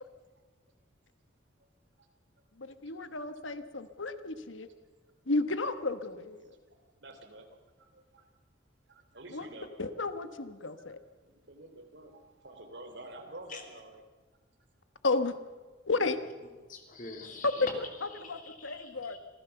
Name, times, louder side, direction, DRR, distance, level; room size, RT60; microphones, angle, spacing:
voice 1, 2.6-4.7 5.3-6.5 9.3-9.5 9.8-11.0 15.0-15.4 15.9-16.2 17.4-17.5 18.0-19.2, left 3 dB, 85° left, 10 dB, 1.3 m, -33 dB
voice 2, 7.0-8.2 8.9-9.7 10.8-10.9 11.2-14.0, right 1 dB, 65° right, 6 dB, 3.0 m, -49 dB
voice 3, 16.7-19.2, left 3 dB, 45° left, 3 dB, 3.2 m, -45 dB
26.5 x 15.5 x 7.0 m, 1.3 s
head